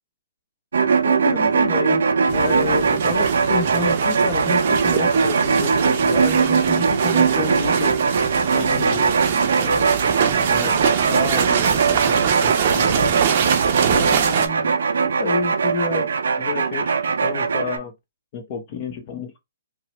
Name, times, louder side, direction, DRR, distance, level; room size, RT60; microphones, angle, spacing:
sound 1, 0.7-17.8, right 5 dB, 85° right, 0.5 m, -20 dB
voice 1, 1.0-2.0 2.3-8.0 8.5-9.2 9.6-10.0 10.5-13.2 13.9-14.8 15.2-16.1 16.4-17.9 18.3-19.4, left 5 dB, 35° left, 0.7 m, -30 dB
sound 2, 2.3-14.5, right 8 dB, 40° right, 0.6 m, -24 dB
3.0 x 2.2 x 3.0 m
hypercardioid pair, 165°, 0 cm